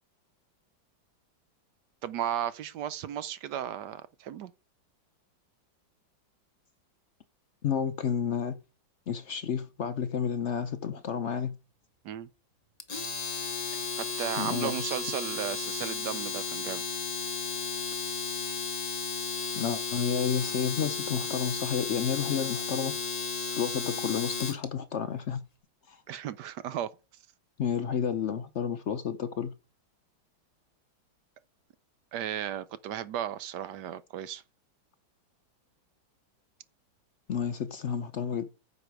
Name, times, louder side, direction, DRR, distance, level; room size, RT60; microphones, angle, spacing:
voice 1, 2.0-4.5 12.0-12.3 14.0-16.8 26.1-26.9 32.1-34.4, right 10 dB, 70° right, 1.2 m, -35 dB
voice 2, 7.6-8.5 9.1-11.5 14.4-15.0 19.6-22.9 23.6-25.4 25.9-26.0 27.6-29.5 37.3-38.5, left 7 dB, 70° left, 0.6 m, -31 dB
Domestic sounds home sounds, 12.8-24.6, left 5 dB, 30° left, 0.8 m, -34 dB
9.5 x 6.7 x 4.6 m
omnidirectional pair, 2.1 m